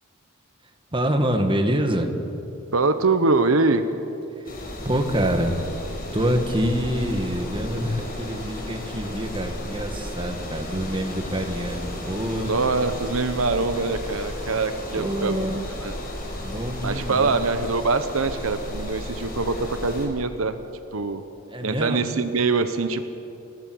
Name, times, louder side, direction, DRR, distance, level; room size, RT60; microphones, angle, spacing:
voice 1, 0.9-2.1 4.4-5.6 6.1-12.5 15.0-15.7 16.4-17.3 21.5-22.0, equal, 25° right, 5 dB, 1.7 m, -26 dB
voice 2, 2.7-3.8 12.4-15.5 15.8-16.0 16.8-20.6 20.9-21.2 21.6-23.0, right 3 dB, 75° right, 10 dB, 1.0 m, -23 dB
sound 1, 4.4-20.1, left 1 dB, 45° left, 5.4 m, -34 dB
30.0 x 12.5 x 7.8 m, 2.8 s
head